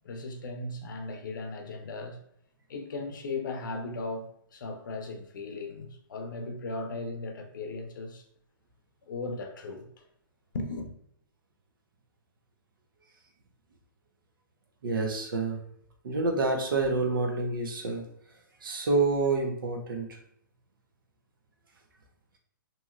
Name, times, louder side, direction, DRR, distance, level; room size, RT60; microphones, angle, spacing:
voice 1, 0.0-2.2 2.7-8.2 9.1-9.9 10.5-10.9, left 3 dB, 65° left, 0.6 m, -37 dB
voice 2, 14.8-15.6 16.0-18.0 18.6-20.1, right 3 dB, 75° right, 0.8 m, -28 dB
2.9 x 2.7 x 2.5 m
hypercardioid pair, 165°, 12 cm